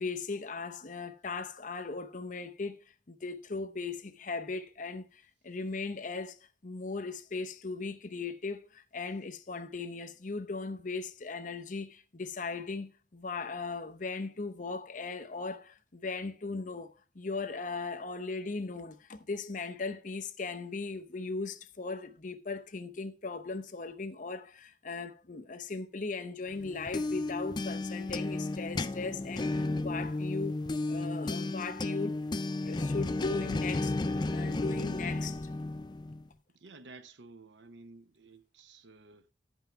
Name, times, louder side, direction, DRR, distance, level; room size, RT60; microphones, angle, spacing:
voice 1, 0.0-2.8 3.1-6.4 6.6-30.6 30.9-32.2 32.6-34.0 34.3-35.5, left 4 dB, 45° left, 0.7 m, -38 dB
sound 1, 26.6-36.3, left 2 dB, 25° left, 0.4 m, -33 dB
voice 2, 36.5-39.3, right 3 dB, 75° right, 0.7 m, -53 dB
11.5 x 5.5 x 4.5 m
head